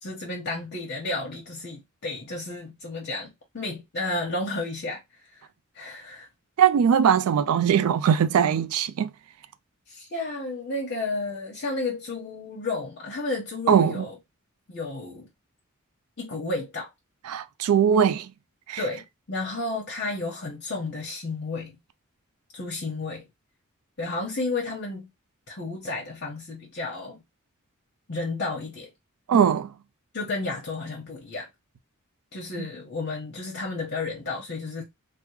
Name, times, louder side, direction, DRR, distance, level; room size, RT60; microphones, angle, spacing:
voice 1, 0.0-5.0 5.3-5.4 5.7-6.3 9.9-14.1 14.7-15.3 16.2-16.9 18.8-21.8 22.5-23.3 24.0-25.1 25.5-27.2 28.1-28.9 30.1-31.5 32.3-34.8, left 3 dB, 50° left, 0.9 m, -32 dB
voice 2, 6.6-9.1 13.7-14.0 17.3-18.3 18.7-18.8 29.3-29.7 32.6-32.7, right 8 dB, 85° right, 0.3 m, -21 dB
3.4 x 2.0 x 3.1 m
head